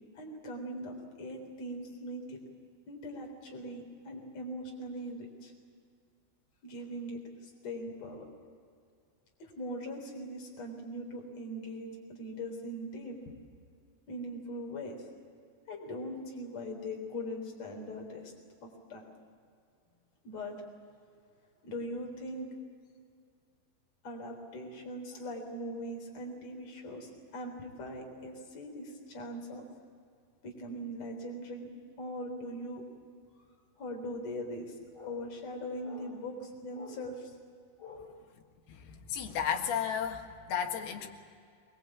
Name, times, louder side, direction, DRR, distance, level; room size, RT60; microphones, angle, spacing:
voice 1, 0.1-2.4 2.9-5.5 6.6-8.3 9.4-13.2 14.1-15.0 15.7-18.3 18.6-19.0 20.2-20.6 21.6-22.5 24.0-29.7 30.4-31.7 32.0-32.8 33.8-37.3 37.8-38.1, equal, 40° left, 1 dB, 4.7 m, -41 dB
voice 2, 38.7-41.1, left 8 dB, 70° left, 2 dB, 3.6 m, -33 dB
23.5 x 22.0 x 8.7 m, 2.3 s
omnidirectional pair, 5.1 m